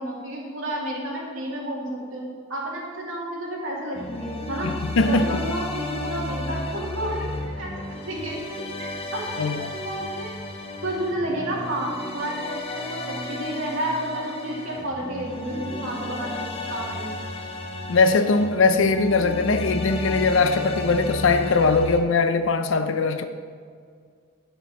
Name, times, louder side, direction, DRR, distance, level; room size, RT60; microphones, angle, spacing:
voice 1, 0.0-2.2 2.5-4.7 5.1-10.3 10.8-17.2, right 1 dB, 75° right, -4 dB, 2.3 m, -31 dB
sound 1, 3.9-22.0, left 2 dB, 30° left, 0.7 m, -33 dB
voice 2, 4.6-5.4 9.4-9.8 17.9-23.3, left 4 dB, 65° left, 9 dB, 0.5 m, -21 dB
9.1 x 6.8 x 4.1 m, 2.1 s
head